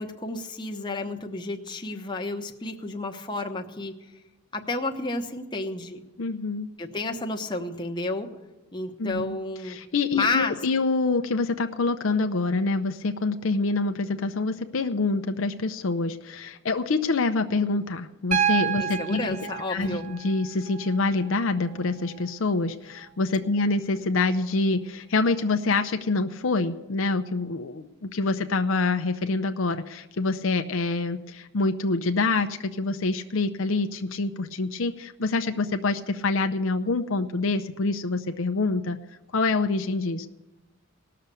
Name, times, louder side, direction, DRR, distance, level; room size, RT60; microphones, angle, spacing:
voice 1, 0.0-4.0 4.5-6.0 6.8-8.3 8.7-9.8 10.1-10.5 18.8-20.0, left 2 dB, 20° left, 3 dB, 1.0 m, -31 dB
voice 2, 6.2-6.7 9.0-9.4 9.6-39.0 39.3-40.3, left 3 dB, 60° left, 7 dB, 0.6 m, -26 dB
Piano, 18.3-22.3 23.9-24.0, right 9 dB, 30° right, 0.6 m, -30 dB
18.5 x 6.7 x 8.3 m, 1.1 s
head